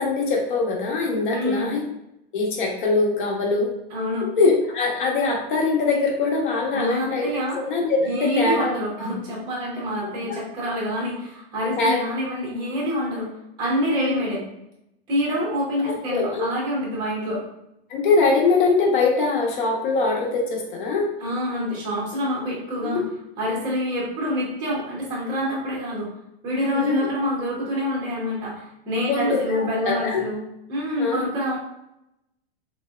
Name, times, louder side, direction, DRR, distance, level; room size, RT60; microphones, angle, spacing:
voice 1, 0.0-1.8 2.3-3.7 4.2-7.3 7.6-8.8 10.0-10.4 11.8-12.0 13.9-14.2 15.8-16.5 17.9-21.1 22.8-23.0 26.7-27.0 29.1-30.2 31.0-31.2, left 3 dB, 50° left, 0 dB, 0.8 m, -22 dB
voice 2, 1.3-1.8 3.9-4.3 6.7-7.6 8.0-13.3 13.6-14.4 15.1-17.4 21.2-23.0 23.4-26.1 26.4-31.6, equal, 15° right, -5 dB, 0.6 m, -26 dB
3.9 x 2.1 x 2.2 m, 0.84 s
supercardioid pair, 170°, 32 cm